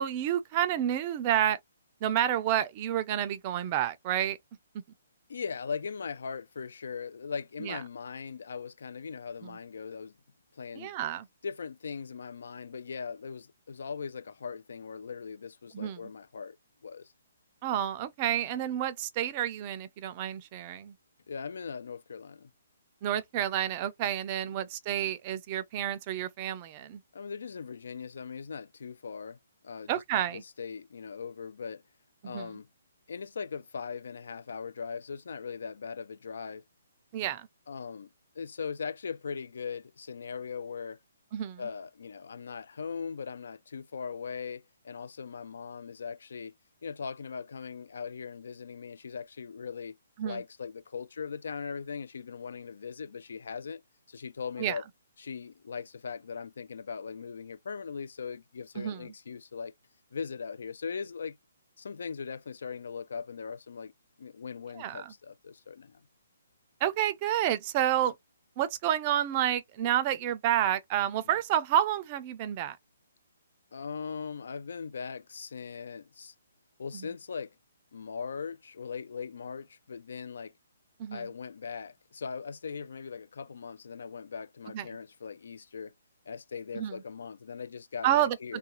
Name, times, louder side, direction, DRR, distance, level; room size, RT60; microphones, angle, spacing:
voice 1, 0.0-1.6 2.0-4.4 7.6-7.8 9.4-9.6 10.8-11.3 15.7-16.0 17.6-20.9 23.0-27.0 29.9-30.4 32.2-32.5 37.1-37.5 41.3-41.6 50.2-50.4 54.6-54.8 58.8-59.1 64.7-65.1 66.8-68.2 68.6-72.8 76.9-77.1 81.0-81.3 84.7-84.8 86.7-87.0 88.0-88.4, right 11 dB, 30° right, 0.4 m, -29 dB
voice 2, 5.3-10.1 10.5-10.9 11.4-16.6 16.8-17.1 21.3-22.5 27.1-29.4 29.6-30.0 30.3-31.8 32.2-32.7 33.1-36.6 37.7-41.0 41.6-46.5 46.8-50.0 50.2-53.8 54.1-54.8 55.2-59.7 60.1-61.4 61.8-63.9 64.2-66.1 73.7-76.3 76.8-77.5 77.9-80.5 81.1-85.9 86.3-88.6, left 6 dB, 70° left, 0.3 m, -39 dB
2.5 x 2.2 x 2.9 m
hypercardioid pair, 145°, 0 cm